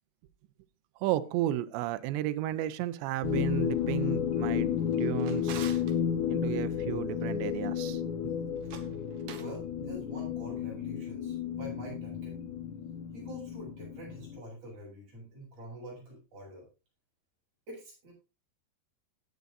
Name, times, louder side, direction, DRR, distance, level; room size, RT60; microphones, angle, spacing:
voice 1, 1.0-4.7 5.0-5.8 6.3-8.0, right 14 dB, 85° right, 2.9 m, -33 dB
sound 1, 3.2-14.4, left 8 dB, 65° left, 2.2 m, -32 dB
Drawer open or close, 4.8-6.0 8.5-9.6, right 8 dB, 65° right, 2.6 m, -46 dB
voice 2, 9.3-12.4 13.1-16.7 17.7-18.1, right 1 dB, 40° right, 8.7 m, -46 dB
18.5 x 8.3 x 2.6 m
omnidirectional pair, 5.0 m